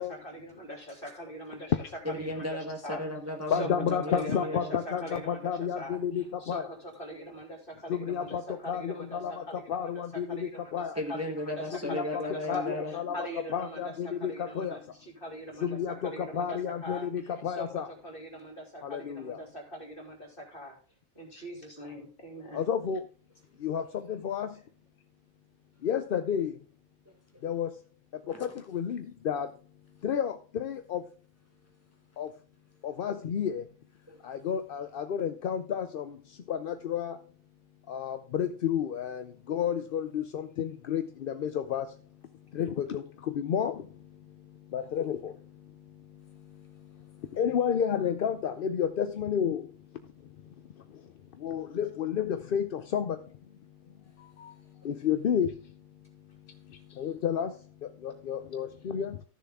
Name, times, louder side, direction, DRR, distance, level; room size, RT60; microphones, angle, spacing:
voice 1, 0.0-1.7 2.2-2.5 2.8-3.0 3.5-9.9 10.3-10.7 11.1-11.5 11.9-20.8 21.1-22.6, equal, 40° left, 2 dB, 2.9 m, -42 dB
voice 2, 2.0-4.7 10.9-12.9 27.1-27.2 28.3-28.5 34.1-34.3, left 1 dB, 10° right, 2 dB, 1.2 m, -35 dB
voice 3, 3.5-6.7 7.9-11.0 11.8-12.2 12.5-13.3 13.5-14.8 15.6-17.9 18.8-19.4 22.5-23.0 23.6-24.6 25.8-26.6 27.4-27.8 28.1-29.5 30.0-31.1 32.2-32.3 32.8-33.7 34.2-37.2 37.9-42.0 42.5-53.4 54.2-55.8 56.4-59.2, left 8 dB, 55° left, 9 dB, 0.6 m, -32 dB
14.0 x 6.8 x 3.6 m, 0.37 s
omnidirectional pair, 1.4 m